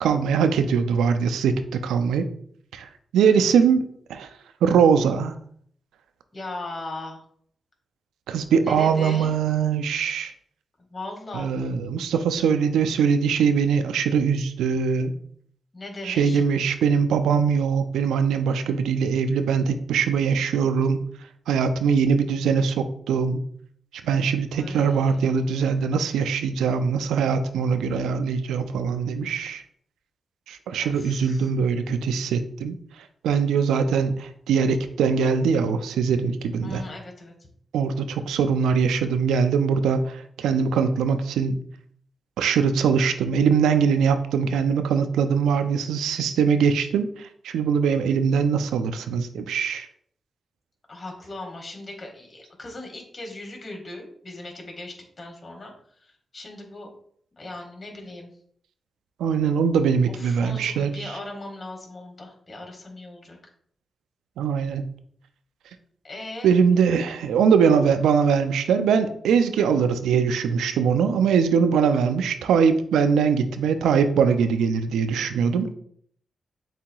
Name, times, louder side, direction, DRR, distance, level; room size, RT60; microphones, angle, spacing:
voice 1, 0.0-2.3 2.7-4.3 4.6-5.4 8.3-10.3 11.3-15.1 16.0-21.1 21.5-23.4 24.0-29.6 30.5-32.8 33.2-36.8 37.7-41.6 42.4-49.9 59.2-60.9 64.4-64.9 66.4-75.7, right 6 dB, 90° right, 9 dB, 0.3 m, -22 dB
voice 2, 6.3-7.2 8.6-9.4 10.9-11.7 15.7-16.4 24.5-25.4 30.8-31.5 36.6-37.5 50.9-56.9 57.4-58.3 60.1-63.4 66.0-66.6 69.6-69.9, left 2 dB, 45° left, 1 dB, 1.7 m, -39 dB
7.3 x 2.8 x 2.3 m, 0.63 s
supercardioid pair, 50°, 0 cm